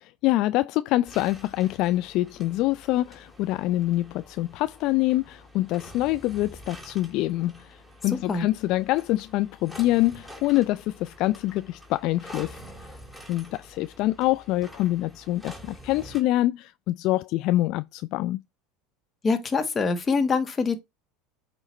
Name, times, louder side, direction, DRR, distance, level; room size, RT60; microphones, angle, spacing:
voice 1, 0.0-12.6 13.3-18.4, left 16 dB, 55° left, 0.3 m, -25 dB
sound 1, 1.0-16.2, equal, ahead, 2.9 m, -47 dB
voice 2, 8.1-8.5 19.2-20.8, left 4 dB, 25° left, 1.5 m, -25 dB
8.1 x 3.0 x 4.3 m
hypercardioid pair, 80°, 0 cm